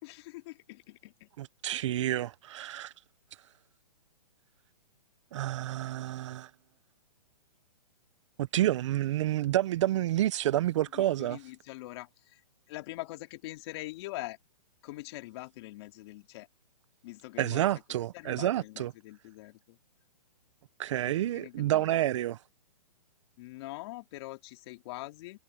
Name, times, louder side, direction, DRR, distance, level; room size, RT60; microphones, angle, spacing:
voice 1, 0.0-1.3 10.8-12.4 12.7-14.4 14.8-16.5 17.0-17.6 18.1-19.8 21.1-21.9 23.4-25.4, left 19 dB, 40° left, 3.1 m, -43 dB
voice 2, 1.4-2.9 5.3-6.5 8.4-11.4 17.4-18.9 20.8-22.4, right 13 dB, 45° right, 0.7 m, -29 dB
hypercardioid pair, 150°, 21 cm